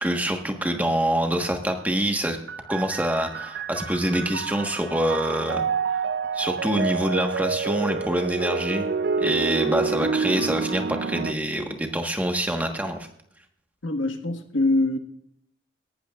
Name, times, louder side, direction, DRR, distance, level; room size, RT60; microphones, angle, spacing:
voice 1, 0.0-2.4 2.7-5.6 6.3-8.9 9.2-13.0, right 1 dB, 10° right, 4 dB, 1.3 m, -25 dB
sound 1, 2.5-11.3, right 5 dB, 65° right, 0.5 m, -28 dB
voice 2, 13.8-15.0, left 2 dB, 85° left, 6 dB, 1.5 m, -23 dB
18.0 x 12.0 x 2.4 m, 0.69 s
head